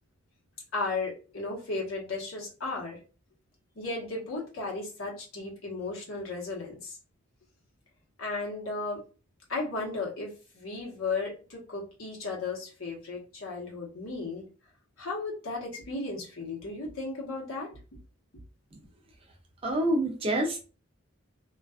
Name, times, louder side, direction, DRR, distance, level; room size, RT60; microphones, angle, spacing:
voice 1, 0.7-3.0 3.8-7.0 8.2-9.0 9.5-14.5 15.0-17.8, left 3 dB, 85° left, -3 dB, 1.1 m, -35 dB
voice 2, 19.6-20.6, right 1 dB, 25° right, 2 dB, 0.4 m, -27 dB
2.4 x 2.2 x 2.3 m, 0.35 s
head